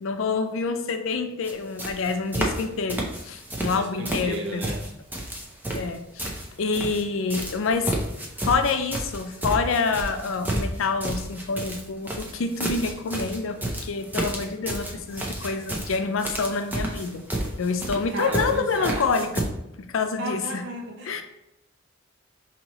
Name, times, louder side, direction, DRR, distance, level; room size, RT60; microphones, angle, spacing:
voice 1, 0.0-4.6 5.7-6.3 6.6-7.9 8.4-17.2 17.6-19.4 19.8-20.6 21.1-21.2, left 4 dB, 75° left, 7 dB, 0.5 m, -27 dB
sound 1, 1.4-1.5 1.8-2.6 2.9-3.8 4.0-7.0 7.3-19.4, right 1 dB, 10° right, 0.6 m, -31 dB
voice 2, 3.6-4.9 18.1-19.1 20.2-21.2, right 1 dB, 60° right, 2 dB, 0.5 m, -33 dB
5.4 x 2.9 x 2.9 m, 0.86 s
head